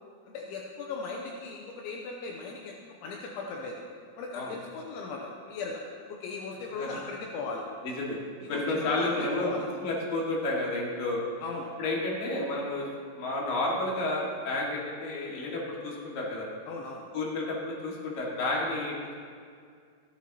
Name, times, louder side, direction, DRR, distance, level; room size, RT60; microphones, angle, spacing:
voice 1, 0.3-2.7 3.0-3.8 4.2-5.8 6.1-7.6 8.4-9.7 11.4-11.7 16.7-17.0, left 4 dB, 80° left, -1 dB, 3.1 m, -38 dB
voice 2, 7.8-8.2 8.5-9.5 9.8-11.2 11.8-12.9 13.1-16.5 17.1-19.1, left 2 dB, 50° left, -3 dB, 3.4 m, -31 dB
15.5 x 15.0 x 3.0 m, 2.1 s
omnidirectional pair, 5.7 m